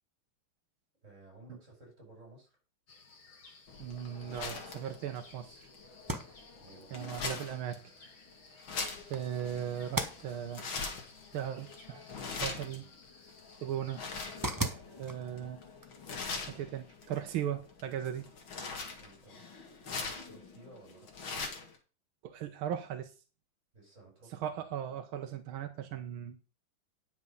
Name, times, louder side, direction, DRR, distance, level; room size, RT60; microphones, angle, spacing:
voice 1, 1.0-2.6 6.6-7.4 19.0-19.5 19.8-21.5 23.7-24.5, right 2 dB, 35° right, 0 dB, 5.6 m, -56 dB
sound 1, 2.9-14.7, left 4 dB, 55° left, 2.4 m, -58 dB
sound 2, 3.7-21.8, left 4 dB, 75° left, 2.6 m, -43 dB
voice 2, 3.8-5.7 6.9-7.9 9.1-10.7 11.3-12.9 13.6-14.0 14.6-15.6 16.5-18.3 22.2-23.1 24.4-26.4, right 10 dB, 85° right, 7 dB, 1.7 m, -38 dB
sound 3, 5.9-17.6, right 2 dB, 15° right, 0.8 m, -43 dB
9.8 x 6.2 x 5.4 m, 0.36 s
omnidirectional pair, 2.2 m